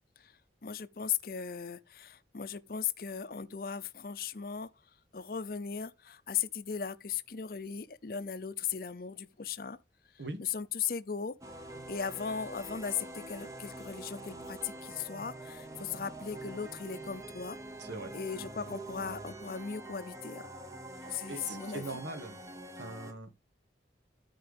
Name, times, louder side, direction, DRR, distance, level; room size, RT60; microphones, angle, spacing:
voice 1, 0.6-4.7 5.1-9.8 10.1-11.4 11.9-17.6 18.1-20.5 21.0-22.0, left 7 dB, 55° left, 0.6 m, -37 dB
sound 1, 11.4-23.1, right 2 dB, 20° right, 0.9 m, -45 dB
voice 2, 17.8-18.1 20.9-22.4 22.8-23.3, right 2 dB, 85° right, 1.8 m, -41 dB
13.0 x 4.7 x 3.4 m
head